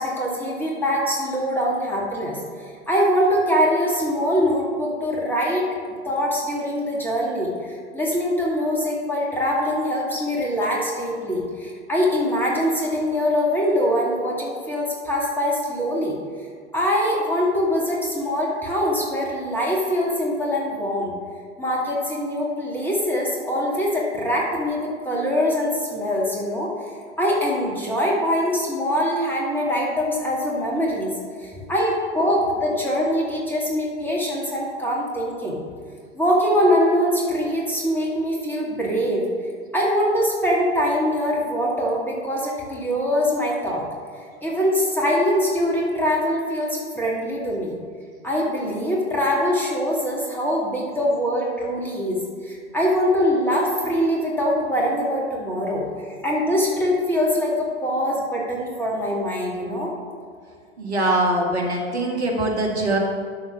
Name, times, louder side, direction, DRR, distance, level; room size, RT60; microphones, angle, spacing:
voice 1, 0.0-5.7 6.0-16.2 16.7-21.1 21.6-26.7 27.2-31.1 31.4-35.6 36.1-39.2 39.7-43.9 44.4-47.7 48.2-55.9 56.2-59.9, equal, 5° left, -4 dB, 2.5 m, -23 dB
voice 2, 60.8-63.0, right 1 dB, 70° right, -1 dB, 1.8 m, -22 dB
11.5 x 4.2 x 6.3 m, 2.1 s
figure-of-eight pair, 90°, 34 cm